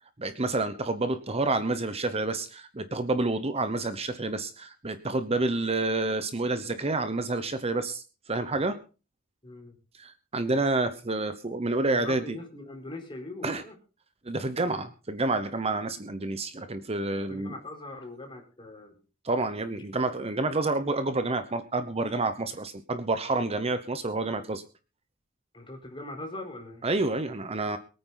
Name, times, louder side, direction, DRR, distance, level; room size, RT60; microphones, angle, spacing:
voice 1, 0.2-8.8 9.9-12.4 13.4-13.6 14.2-17.5 19.2-24.6 26.8-27.8, right 2 dB, 30° right, 10 dB, 0.9 m, -29 dB
voice 2, 9.4-9.8 11.9-13.7 17.3-19.0 25.5-26.8, left 2 dB, 25° left, 2 dB, 4.3 m, -41 dB
23.0 x 9.2 x 4.0 m, 0.34 s
head